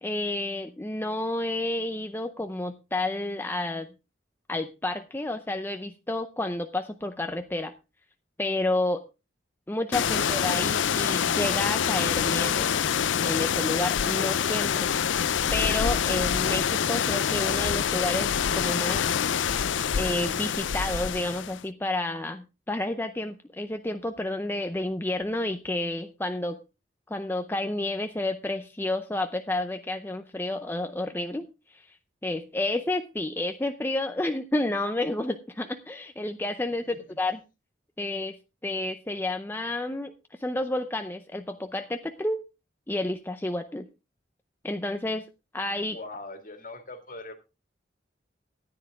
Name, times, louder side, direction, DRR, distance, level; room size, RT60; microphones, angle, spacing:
voice 1, 0.0-3.9 4.5-7.7 8.4-9.0 9.7-12.8 13.2-14.9 15.5-19.1 20.0-26.6 27.1-31.9 32.2-37.4 38.0-38.4 38.6-40.1 40.4-42.4 42.9-43.9 44.6-45.2 45.5-46.0, left 2 dB, 10° left, 7 dB, 0.6 m, -30 dB
sound 1, 9.9-21.6, left 8 dB, 90° left, 0.5 m, -26 dB
voice 2, 36.8-37.2 45.9-47.3, left 2 dB, 45° left, 7 dB, 2.0 m, -41 dB
14.0 x 9.9 x 3.5 m, 0.29 s
head